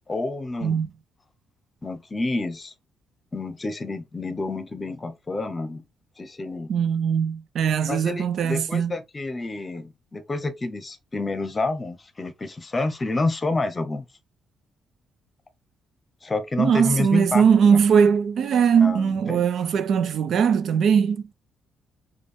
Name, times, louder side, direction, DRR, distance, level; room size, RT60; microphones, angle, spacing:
voice 1, 0.1-0.8 1.8-2.7 3.3-5.8 6.2-6.7 7.9-14.0 16.2-17.8 18.8-19.4, left 3 dB, 25° left, 0.9 m, -29 dB
voice 2, 6.7-8.9 16.6-21.3, right 7 dB, 65° right, 0.4 m, -20 dB
5.1 x 2.4 x 3.3 m
cardioid pair, 90°, 0 cm